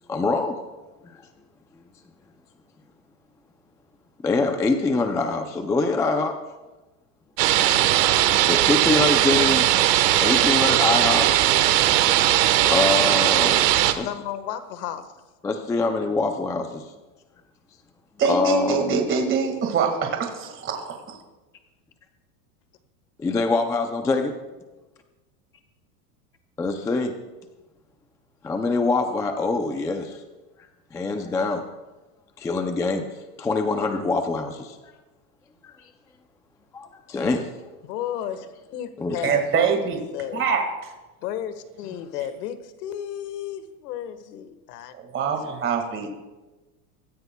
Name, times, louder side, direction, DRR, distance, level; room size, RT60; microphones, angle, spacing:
voice 1, 0.1-0.6 1.0-1.2 4.2-6.4 8.4-9.7 10.2-11.4 12.7-13.7 13.9-14.1 15.4-16.8 18.2-19.0 23.2-24.4 26.6-27.1 28.4-30.2 30.9-31.6 32.4-33.1 33.4-34.9 35.6-35.7 36.7-37.5 39.0-39.4, left 3 dB, 5° left, 6 dB, 0.3 m, -24 dB
sound 1, 7.4-13.9, right 13 dB, 85° right, 1.2 m, -19 dB
voice 2, 13.8-15.1 37.8-39.7 40.1-40.4 41.2-44.9 46.0-46.1, left 10 dB, 80° left, 11 dB, 1.5 m, -33 dB
voice 3, 18.2-21.0 39.2-40.0 40.3-40.6 44.9-46.1, right 6 dB, 25° right, 4 dB, 1.8 m, -24 dB
25.0 x 14.0 x 2.2 m, 1.1 s
supercardioid pair, 135°, 47 cm